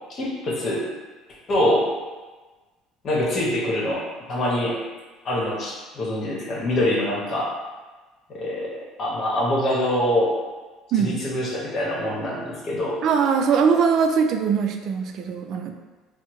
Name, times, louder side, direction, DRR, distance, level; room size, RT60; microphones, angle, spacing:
voice 1, 0.1-0.9 1.5-1.9 3.0-4.8 5.2-7.5 8.3-8.7 9.0-10.4 10.9-13.0, left 1 dB, 45° left, -4 dB, 1.1 m, -24 dB
voice 2, 13.0-15.7, right 6 dB, 55° right, 5 dB, 0.4 m, -21 dB
4.3 x 2.1 x 3.1 m, 1.3 s
supercardioid pair, 100°, 0 cm